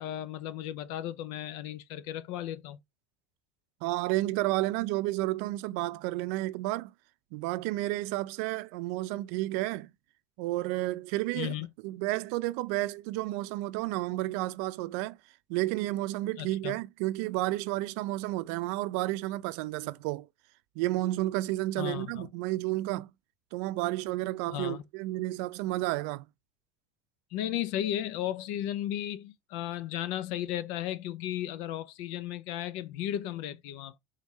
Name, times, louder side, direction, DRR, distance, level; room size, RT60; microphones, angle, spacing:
voice 1, 0.0-2.8 11.4-11.7 16.4-16.8 21.8-22.3 24.5-24.8 27.3-34.0, left 12 dB, 70° left, 0.4 m, -35 dB
voice 2, 3.8-6.9 7.3-9.9 10.4-11.6 11.8-15.2 15.5-20.3 20.8-23.1 23.5-26.3, right 18 dB, 80° right, 0.5 m, -31 dB
3.7 x 3.5 x 4.1 m
cardioid pair, 160°, 8 cm